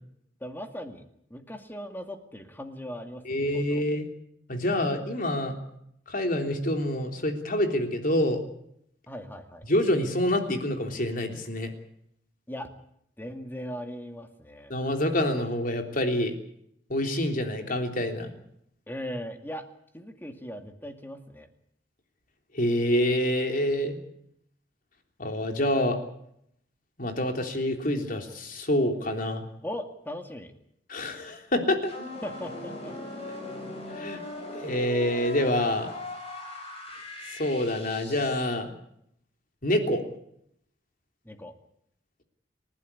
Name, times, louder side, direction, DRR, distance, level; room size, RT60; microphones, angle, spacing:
voice 1, 0.4-1.0 1.3-3.8 9.1-9.7 12.5-12.7 13.2-14.7 18.9-19.7 19.9-21.5 29.6-30.5 32.2-33.0 41.3-41.5, equal, 10° left, 6 dB, 2.2 m, -39 dB
voice 2, 3.3-4.1 4.5-5.6 6.1-8.4 9.7-11.7 14.7-16.3 16.9-18.3 22.5-24.0 25.2-26.0 27.0-29.4 30.9-31.9 34.0-34.2 34.6-35.9 37.4-38.7 39.6-40.0, left 1 dB, 50° left, 4 dB, 3.5 m, -26 dB
sound 1, 31.8-38.5, left 1 dB, 35° left, 6.9 m, -39 dB
29.5 x 12.0 x 9.8 m, 0.73 s
head